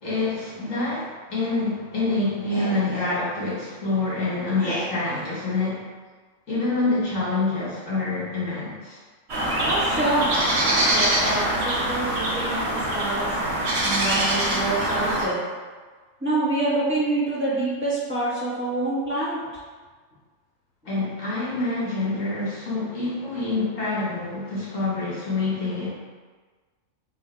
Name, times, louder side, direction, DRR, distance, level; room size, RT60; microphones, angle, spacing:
voice 1, 0.0-5.8 6.5-9.0 20.8-25.9, left 3 dB, 90° left, -8 dB, 1.7 m, -26 dB
sound 1, 9.3-15.2, right 1 dB, 60° right, 1.2 m, -24 dB
voice 2, 9.6-10.3 10.5-13.3 13.8-15.4 16.2-19.4, right 2 dB, 10° right, -9 dB, 1.3 m, -26 dB
3.6 x 2.6 x 4.5 m, 1.4 s
omnidirectional pair, 1.3 m